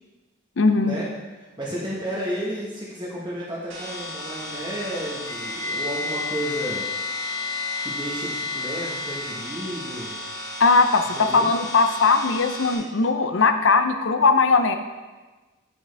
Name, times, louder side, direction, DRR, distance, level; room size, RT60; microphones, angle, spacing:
voice 1, 0.6-1.0 10.6-14.8, left 4 dB, 65° left, 8 dB, 0.6 m, -19 dB
voice 2, 1.4-6.9 7.8-10.1 11.1-11.5, equal, 20° right, -7 dB, 1.2 m, -32 dB
sound 1, 3.7-12.7, left 1 dB, 70° right, 1.9 m, -35 dB
Wind instrument woodwind instrument, 5.2-9.4, left 4 dB, 15° left, 0.6 m, -31 dB
8.5 x 7.0 x 3.4 m, 1.2 s
head